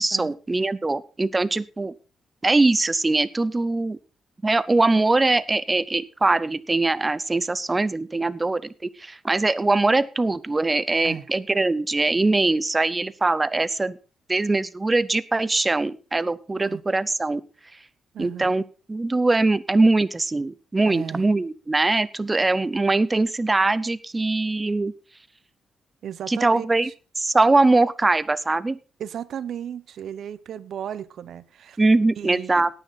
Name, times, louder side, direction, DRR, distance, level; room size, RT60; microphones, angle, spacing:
voice 1, 0.0-1.9 2.4-4.0 4.4-14.0 14.3-17.4 18.2-18.6 18.9-24.9 26.3-26.9 27.2-28.8 31.8-32.7, right 2 dB, 15° right, 17 dB, 0.6 m, -22 dB
voice 2, 18.1-18.6 20.8-21.3 26.0-26.9 29.0-31.8 32.2-32.7, right 9 dB, 55° right, 17 dB, 0.8 m, -35 dB
17.5 x 9.1 x 4.1 m, 0.34 s
cardioid pair, 170°, 0 cm